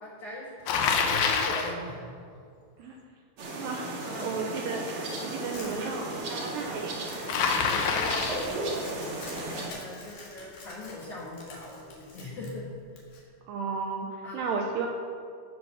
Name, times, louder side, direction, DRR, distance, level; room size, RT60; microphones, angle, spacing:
voice 1, 0.0-2.0 4.0-4.4 7.8-13.3 14.2-14.5, left 1 dB, 65° left, -5 dB, 1.9 m, -40 dB
Bicycle, 0.7-1.8 7.3-8.6, left 5 dB, 85° left, 2.0 m, -26 dB
sound 1, 3.4-9.7, right 2 dB, 50° right, 2.6 m, -35 dB
voice 2, 3.6-3.9 4.1-4.8 5.2-6.9 7.2-7.3 13.5-14.1 14.3-14.9, right 5 dB, 80° right, 1 dB, 2.5 m, -33 dB
Crumpling crinkling, 5.5-13.2, left 2 dB, 50° left, 3.3 m, -47 dB
18.5 x 6.3 x 6.3 m, 2.3 s
omnidirectional pair, 5.7 m